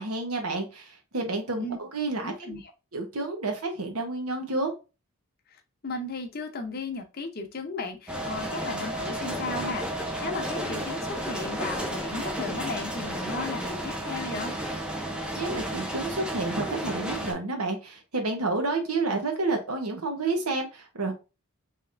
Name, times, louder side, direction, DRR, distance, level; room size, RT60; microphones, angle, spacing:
voice 1, 0.0-2.5 2.9-4.7 15.3-21.1, right 3 dB, 85° right, 4 dB, 1.1 m, -30 dB
voice 2, 2.2-2.7 5.5-14.5, left 3 dB, 45° left, 5 dB, 0.7 m, -35 dB
sound 1, 8.1-17.3, right 1 dB, 5° right, 0.5 m, -32 dB
3.4 x 2.9 x 3.2 m, 0.29 s
head